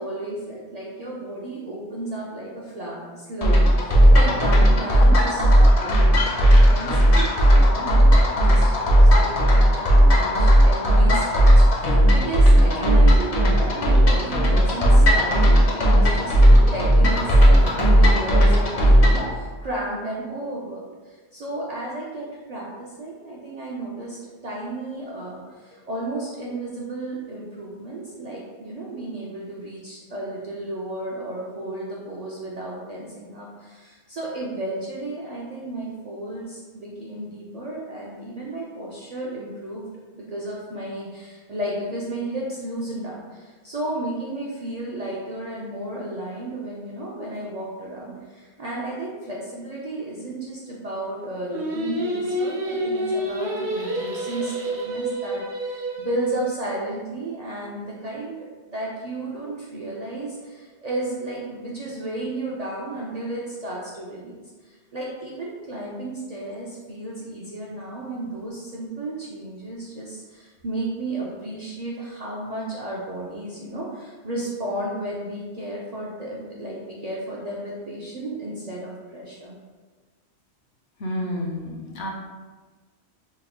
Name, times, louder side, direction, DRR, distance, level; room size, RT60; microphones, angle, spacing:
voice 1, 0.0-24.2 24.4-39.8 40.1-58.4 58.7-79.6, right 1 dB, 55° right, -5 dB, 0.4 m, -33 dB
sound 1, 3.4-19.3, equal, 50° left, 0.5 m, -15 dB
Singing, 51.5-56.6, right 1 dB, 85° right, 1.0 m, -28 dB
voice 2, 81.0-82.1, left 1 dB, 75° left, -1 dB, 0.9 m, -29 dB
3.2 x 2.1 x 3.5 m, 1.4 s
omnidirectional pair, 1.1 m